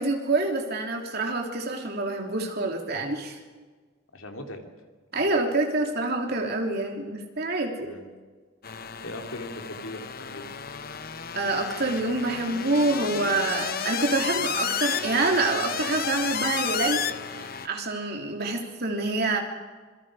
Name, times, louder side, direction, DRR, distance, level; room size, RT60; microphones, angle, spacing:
voice 1, 0.0-3.4 5.1-7.9 11.3-19.4, right 2 dB, 45° right, 2 dB, 3.2 m, -27 dB
voice 2, 4.1-4.7 7.8-8.1 9.0-10.5, left 1 dB, 70° left, 4 dB, 2.9 m, -39 dB
sound 1, 8.6-17.7, left 7 dB, 45° left, 0.8 m, -32 dB
26.5 x 23.0 x 5.0 m, 1.4 s
head